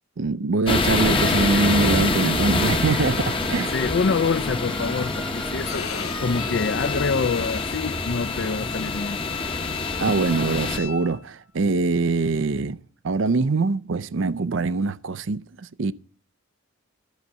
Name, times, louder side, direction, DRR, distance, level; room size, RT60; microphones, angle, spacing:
voice 1, 0.2-3.7 10.0-12.8 13.0-15.9, right 3 dB, 60° right, 0.5 m, -23 dB
sound 1, 0.7-10.8, left 3 dB, 25° left, 0.9 m, -26 dB
sound 2, 1.1-6.3, equal, 5° left, 0.5 m, -36 dB
voice 2, 3.7-9.2, left 5 dB, 55° left, 0.4 m, -26 dB
Bowed string instrument, 5.6-11.2, left 10 dB, 90° left, 1.8 m, -35 dB
13.5 x 6.5 x 6.9 m
head